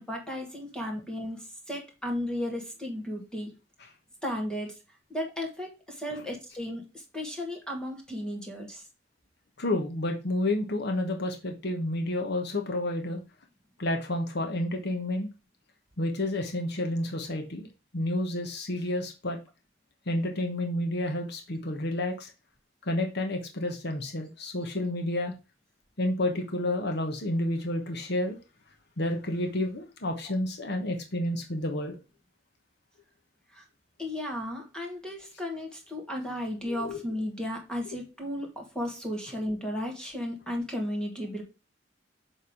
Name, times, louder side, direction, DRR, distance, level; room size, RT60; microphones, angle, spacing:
voice 1, 0.0-3.5 4.2-4.8 5.1-8.8 33.5-33.6 34.0-41.4, left 1 dB, 5° left, 1 dB, 1.9 m, -34 dB
voice 2, 9.6-13.2 13.8-15.3 16.0-17.7 17.9-19.4 20.1-22.3 22.9-25.3 26.0-28.4 29.0-32.0 36.7-37.0, left 1 dB, 60° left, 3 dB, 1.2 m, -30 dB
7.1 x 3.6 x 4.7 m, 0.29 s
head